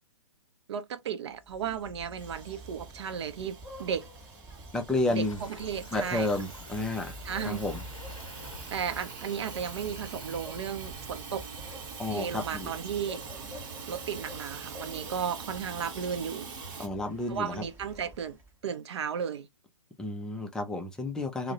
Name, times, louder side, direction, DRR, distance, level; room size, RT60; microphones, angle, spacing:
voice 1, 0.7-4.1 5.1-6.3 7.2-7.6 8.7-11.4 12.1-13.2 13.9-16.5 17.3-19.5 21.4-21.5, right 7 dB, 55° right, 0.5 m, -34 dB
sound 1, 1.3-18.6, right 1 dB, 15° right, 0.7 m, -48 dB
Hiss / Toilet flush / Trickle dribble, 2.2-16.9, right 5 dB, 40° right, 0.9 m, -44 dB
voice 2, 4.7-5.4 5.9-7.8 12.0-12.8 16.8-17.6 20.0-21.5, left 2 dB, 5° left, 0.3 m, -31 dB
Waves surf, 4.9-10.4, left 4 dB, 80° left, 0.5 m, -49 dB
2.3 x 2.0 x 2.8 m
figure-of-eight pair, 120°, 17 cm